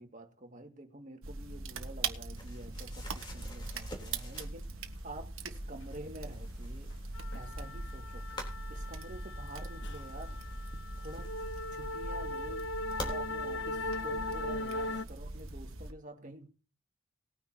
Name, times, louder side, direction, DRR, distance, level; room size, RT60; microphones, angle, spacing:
voice 1, 0.0-6.9 7.3-8.4 8.7-10.4 11.0-11.3 11.7-12.7 13.0-16.5, right 1 dB, 40° right, 2.1 m, -48 dB
sound 1, 1.2-15.9, right 3 dB, 85° right, 1.5 m, -42 dB
sound 2, 2.3-5.1 5.4-7.6 8.3-8.6 9.8-12.2 12.9-13.2 14.2-14.3 14.7-15.5, left 1 dB, 20° left, 3.5 m, -48 dB
sound 3, 6.3-6.5 6.7-15.0, left 2 dB, 60° left, 0.9 m, -39 dB
19.5 x 9.6 x 2.9 m
head